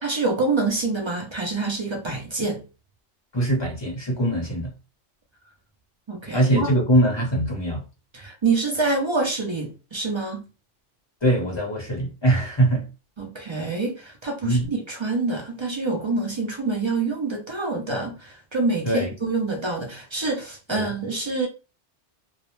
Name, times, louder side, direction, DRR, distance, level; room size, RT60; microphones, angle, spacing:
voice 1, 0.0-2.6 6.1-6.7 8.1-10.5 13.2-21.5, right 3 dB, 45° right, 0.3 m, -26 dB
voice 2, 3.3-4.7 6.3-7.8 11.2-12.9 14.4-14.7 18.8-19.1 20.7-20.8, right 1 dB, 25° left, 0.9 m, -22 dB
2.4 x 2.0 x 3.0 m
omnidirectional pair, 1.2 m